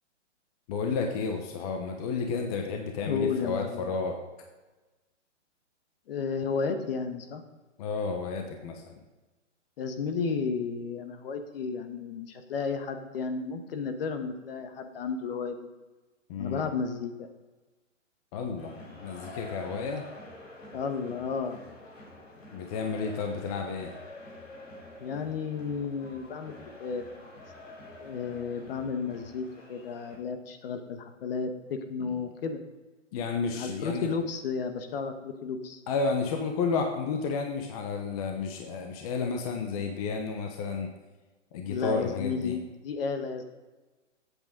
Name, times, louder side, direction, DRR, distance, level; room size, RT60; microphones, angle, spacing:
voice 1, 0.7-4.2 7.8-9.0 16.3-16.7 18.3-20.1 22.5-23.9 32.0-32.1 33.1-34.1 35.9-40.9 41.5-42.6, left 4 dB, 30° left, 3 dB, 1.0 m, -31 dB
voice 2, 3.1-3.8 6.1-7.4 9.8-15.6 16.4-17.3 20.7-21.6 25.0-27.0 28.0-32.6 33.5-35.8 41.7-43.4, left 5 dB, 50° left, 7 dB, 1.3 m, -33 dB
sound 1, 18.6-30.2, left 2 dB, 90° left, 3.5 m, -48 dB
13.5 x 8.3 x 3.7 m, 1.2 s
hypercardioid pair, 155°, 37 cm